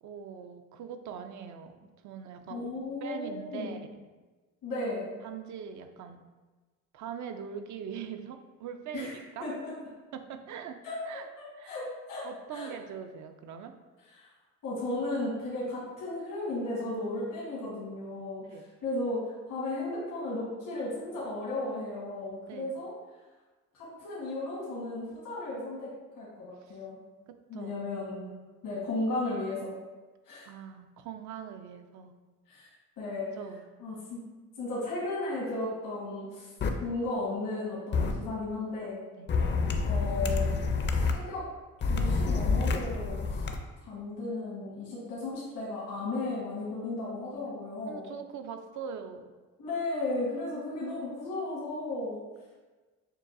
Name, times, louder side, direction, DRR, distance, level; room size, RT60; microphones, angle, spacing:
voice 1, 0.0-2.7 3.0-3.9 5.2-6.2 6.9-9.1 9.4-9.5 10.1-11.3 11.6-11.8 12.2-13.7 18.4-18.7 22.5-22.7 26.6-26.8 27.5-27.8 30.4-32.1 33.4-33.6 39.2-39.3 47.9-49.3, right 7 dB, 70° right, 7 dB, 0.5 m, -42 dB
voice 2, 2.5-3.8 4.6-5.1 8.9-9.1 9.4-9.7 10.8-11.0 11.4-12.2 12.5-12.7 14.2-14.3 14.6-18.4 18.8-22.9 23.7-27.0 27.5-28.3 28.6-29.7 30.2-30.5 32.5-32.7 33.0-33.3 33.8-34.2 34.6-36.5 36.8-39.0 39.8-40.5 41.0-41.4 41.9-43.4 43.8-48.1 49.6-52.2, left 2 dB, 85° left, -7 dB, 1.5 m, -35 dB
sound 1, 36.6-36.7 37.9-38.1 39.3-41.1 41.8-43.6, left 4 dB, 40° left, 0.4 m, -28 dB
6.6 x 2.3 x 2.5 m, 1.3 s
cardioid pair, 90°, 30 cm